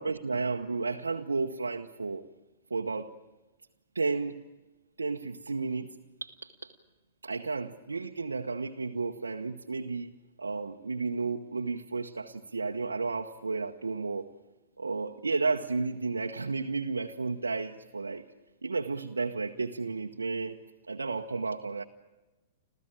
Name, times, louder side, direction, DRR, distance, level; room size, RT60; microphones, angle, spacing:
voice 1, 0.0-2.2 2.7-3.1 3.9-4.4 5.0-5.9 6.2-6.7 7.2-10.1 10.4-14.3 14.8-18.2 18.6-20.6 20.9-21.8, right 4 dB, 85° right, 2 dB, 0.9 m, -32 dB
27.0 x 15.0 x 8.8 m, 1.1 s
figure-of-eight pair, 105°, 0 cm